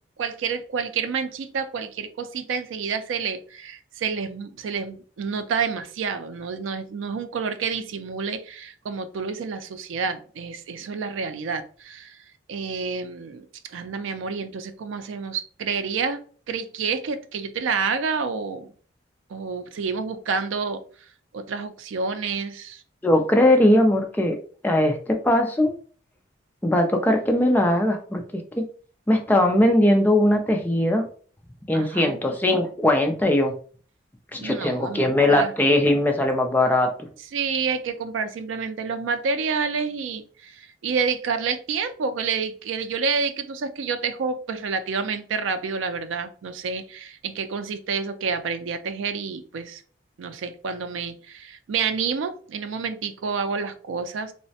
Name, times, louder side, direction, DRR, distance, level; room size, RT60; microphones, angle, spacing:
voice 1, 0.2-12.2 12.5-16.2 16.5-18.7 19.3-20.8 21.3-22.8 31.7-32.2 34.4-35.5 37.3-49.8 50.2-54.3, right 5 dB, 80° right, 9 dB, 0.4 m, -29 dB
voice 2, 23.0-24.4 24.6-25.7 26.6-28.2 28.6-28.7 29.1-31.0 31.7-33.5 34.3-36.9, left 1 dB, 10° left, 4 dB, 0.3 m, -20 dB
3.1 x 2.0 x 2.7 m, 0.43 s
head